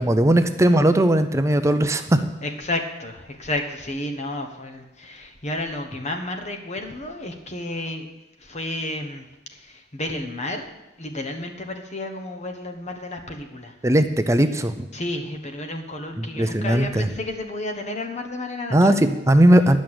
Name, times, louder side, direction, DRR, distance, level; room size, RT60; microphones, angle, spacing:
voice 1, 0.0-2.3 13.8-14.9 16.2-17.1 18.7-19.8, right 1 dB, 15° right, 8 dB, 0.6 m, -18 dB
voice 2, 2.4-8.1 8.4-9.3 9.5-10.7 11.0-13.7 14.9-19.0, left 1 dB, 40° left, 4 dB, 1.2 m, -31 dB
10.5 x 6.3 x 8.8 m, 1.0 s
head